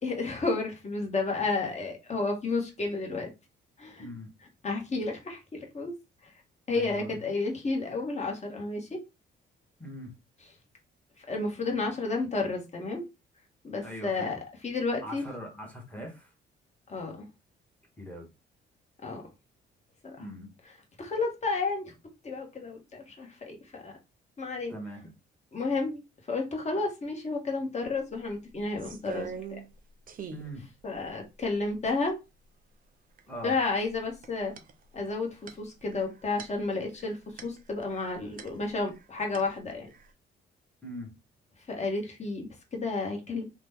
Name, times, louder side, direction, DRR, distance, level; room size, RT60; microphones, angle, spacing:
voice 1, 0.0-3.3 3.8-4.1 4.6-5.9 6.7-9.0 11.3-13.0 13.6-15.2 16.9-17.1 19.0-19.2 20.0-20.2 21.0-21.9 22.2-23.9 24.4-24.7 25.5-26.0 26.3-29.3 30.8-32.2 33.4-34.5 34.9-37.2 37.4-39.9 41.7-43.4, left 3 dB, 35° left, 1 dB, 1.2 m, -31 dB
voice 2, 4.0-4.3 6.7-7.2 9.8-10.1 13.8-14.4 15.0-16.3 18.0-18.3 20.2-20.5 24.7-25.1 30.3-30.7 33.3-33.5 40.8-41.1, equal, 5° left, 1 dB, 1.1 m, -41 dB
sound 1, 27.8-27.9 28.2-29.8 30.1-30.5 31.0-31.1 31.4-32.1 33.2-33.5 33.8-39.0 39.3-40.1, right 6 dB, 45° right, 0.5 m, -44 dB
2.9 x 2.2 x 3.5 m, 0.26 s
cardioid pair, 90°, 20 cm